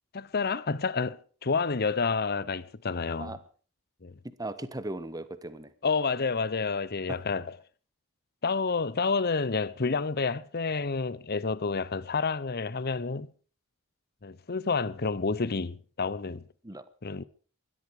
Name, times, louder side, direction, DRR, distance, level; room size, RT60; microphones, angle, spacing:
voice 1, 0.1-3.3 4.0-4.1 5.8-7.5 8.4-13.3 14.2-16.4 17.0-17.2, left 4 dB, 45° left, 0.8 m, -29 dB
voice 2, 4.2-5.7 7.1-7.2 16.6-16.8, right 1 dB, 15° right, 1.3 m, -38 dB
21.0 x 13.0 x 5.0 m
head